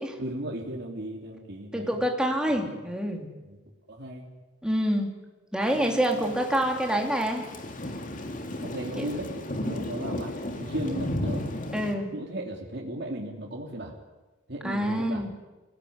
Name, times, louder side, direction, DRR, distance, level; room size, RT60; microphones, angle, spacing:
voice 1, 0.2-2.0 2.5-2.8 3.4-3.6 3.9-4.3 5.7-6.3 8.6-11.5 12.1-13.9 14.5-15.3, right 1 dB, 60° right, -1 dB, 3.3 m, -36 dB
voice 2, 1.7-3.3 4.6-5.1 5.5-7.4 8.9-9.1 11.7-12.1 14.6-15.3, equal, 5° right, 1 dB, 3.2 m, -26 dB
Thunder / Rain, 5.6-11.9, left 1 dB, 45° left, 2.4 m, -34 dB
25.5 x 18.0 x 9.8 m, 1.2 s
head